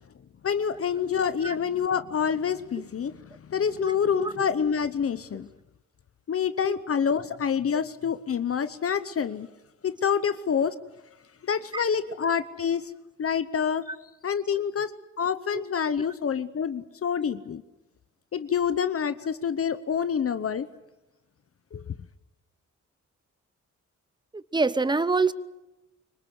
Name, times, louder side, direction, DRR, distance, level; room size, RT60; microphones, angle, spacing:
voice 1, 0.4-3.2 3.5-5.5 6.3-9.5 9.8-10.7 11.4-12.9 13.2-13.8 14.2-17.6 18.3-20.7 21.7-21.8, left 7 dB, 50° left, 12 dB, 0.9 m, -27 dB
voice 2, 3.8-4.3 6.6-6.7 11.7-11.8 13.9-14.0 14.5-14.6 15.5-15.6 24.3-25.3, right 3 dB, 15° right, 15 dB, 0.9 m, -26 dB
25.5 x 24.5 x 8.1 m, 1.0 s
wide cardioid pair, 145°, 29 cm